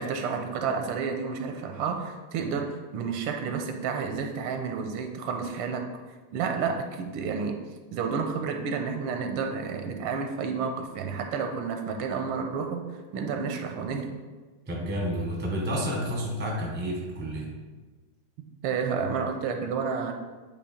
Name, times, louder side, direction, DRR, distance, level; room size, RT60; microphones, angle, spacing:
voice 1, 0.0-5.9 6.3-7.6 7.9-12.9 13.1-14.1 18.6-20.1, right 5 dB, 85° right, 4 dB, 1.6 m, -30 dB
voice 2, 14.7-17.5, equal, 10° right, -1 dB, 0.6 m, -30 dB
8.8 x 2.9 x 4.2 m, 1.3 s
omnidirectional pair, 2.4 m